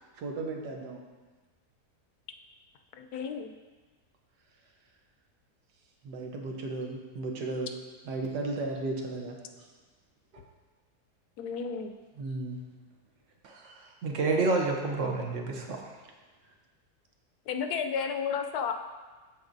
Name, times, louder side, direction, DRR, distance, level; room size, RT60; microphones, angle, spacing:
voice 1, 0.2-1.0 6.0-7.7 8.1-9.4 12.2-12.6, right 2 dB, 90° right, 1 dB, 1.5 m, -35 dB
voice 2, 3.0-3.5 11.4-11.9 17.5-18.7, left 6 dB, 75° left, 5 dB, 1.1 m, -32 dB
voice 3, 14.0-15.9, right 3 dB, 55° right, 2 dB, 1.0 m, -29 dB
13.0 x 4.5 x 2.6 m, 1.3 s
omnidirectional pair, 1.7 m